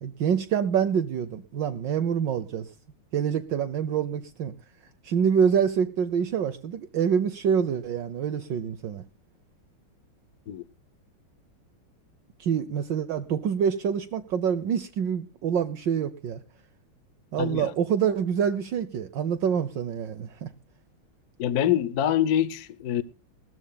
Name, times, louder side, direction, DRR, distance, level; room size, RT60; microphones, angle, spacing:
voice 1, 0.0-2.7 3.1-4.5 5.0-9.0 12.4-16.4 17.3-20.5, right 7 dB, 65° right, 1.4 m, -26 dB
voice 2, 17.4-17.7 21.4-23.0, left 10 dB, 60° left, 1.2 m, -25 dB
20.5 x 15.0 x 2.3 m
omnidirectional pair, 2.2 m